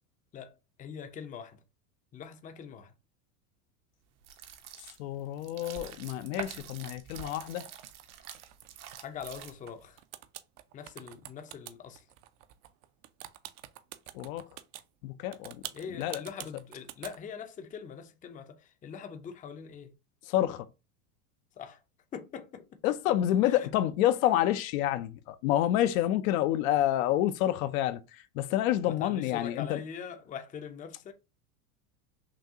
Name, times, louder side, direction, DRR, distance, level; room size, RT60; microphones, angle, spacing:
voice 1, 0.3-1.6 2.1-2.9 9.0-10.0 10.7-12.1 15.7-19.9 21.6-21.8 22.1-22.8 23.1-23.2 23.4-23.7 28.8-31.1, left 7 dB, 20° left, 0.5 m, -43 dB
sound 1, 4.2-9.9, right 9 dB, 75° right, 1.1 m, -46 dB
voice 2, 5.0-7.7 14.1-14.5 15.0-15.6 16.0-16.2 20.3-20.7 22.8-29.8, left 13 dB, 65° left, 0.6 m, -28 dB
sound 2, 7.2-9.7 10.0-14.8 15.3-17.2, right 14 dB, 55° right, 0.6 m, -46 dB
6.2 x 2.3 x 2.7 m
hypercardioid pair, 110°, 45 cm